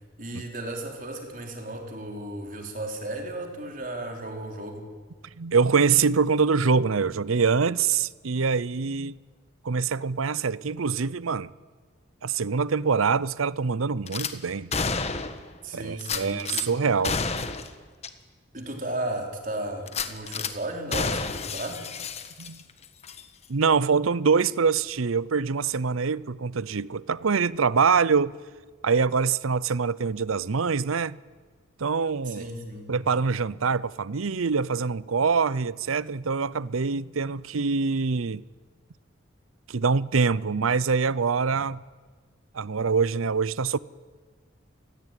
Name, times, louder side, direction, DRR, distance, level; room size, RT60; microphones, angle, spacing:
voice 1, 0.2-4.9 15.6-17.0 18.5-21.9 32.3-32.9 42.9-43.0, right 1 dB, 40° right, 4.1 m, -35 dB
voice 2, 5.4-9.1 9.6-11.5 12.2-14.7 15.7-17.2 22.4-22.6 23.5-28.3 28.8-31.2 31.8-32.5 32.9-38.4 39.7-41.8 42.5-43.8, right 5 dB, 90° right, 0.7 m, -24 dB
Gunshot gunfire / Glass, 14.1-14.3 14.7-15.5 16.0-16.7 17.0-17.7 18.0-18.1 18.6-18.7 19.9-20.5 20.9-22.7 23.0-23.2, left 4 dB, 30° left, 1.4 m, -30 dB
28.0 x 20.5 x 9.2 m
head